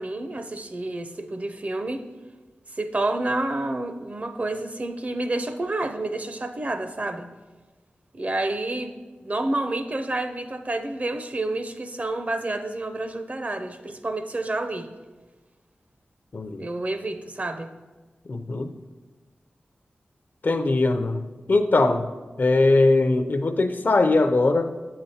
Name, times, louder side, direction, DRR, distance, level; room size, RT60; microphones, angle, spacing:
voice 1, 0.0-2.0 2.8-7.3 8.1-8.9 9.2-14.9 16.6-17.7, right 2 dB, 40° right, 8 dB, 0.5 m, -29 dB
voice 2, 16.3-16.6 18.3-18.7 20.4-22.1 22.4-24.7, left 2 dB, 55° left, 8 dB, 0.5 m, -21 dB
8.4 x 6.7 x 2.8 m, 1.3 s
cardioid pair, 45°, 4 cm